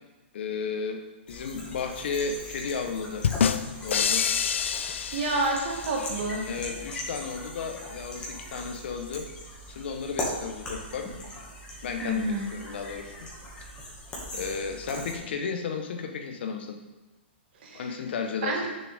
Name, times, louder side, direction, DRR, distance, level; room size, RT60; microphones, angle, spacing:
voice 1, 0.3-3.3 3.8-4.3 6.4-9.3 9.7-11.2 11.8-13.1 14.3-16.8 17.7-18.7, left 5 dB, 60° left, 5 dB, 1.1 m, -33 dB
sound 1, 1.3-15.2, left 1 dB, 15° left, 1.9 m, -40 dB
sound 2, 3.2-6.1, left 7 dB, 85° left, 0.5 m, -27 dB
voice 2, 5.1-6.5 12.0-12.5 17.6-17.8 18.4-18.7, right 2 dB, 55° right, 0 dB, 2.0 m, -28 dB
8.6 x 6.8 x 3.6 m, 1.1 s
hypercardioid pair, 155°, 6 cm